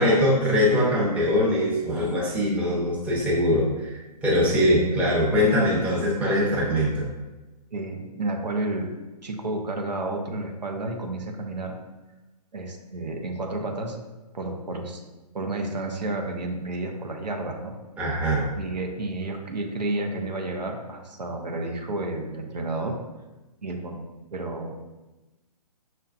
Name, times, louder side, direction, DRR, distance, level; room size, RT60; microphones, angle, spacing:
voice 1, 0.0-3.9 4.2-7.1 18.0-18.5, left 1 dB, 5° right, -6 dB, 0.7 m, -22 dB
voice 2, 7.7-8.9 9.2-11.8 12.5-14.0 14.3-15.0 15.3-17.7 18.6-23.0 23.6-24.0 24.3-24.9, right 2 dB, 85° right, 2 dB, 0.7 m, -31 dB
5.8 x 2.2 x 2.4 m, 1.1 s
hypercardioid pair, 135°, 21 cm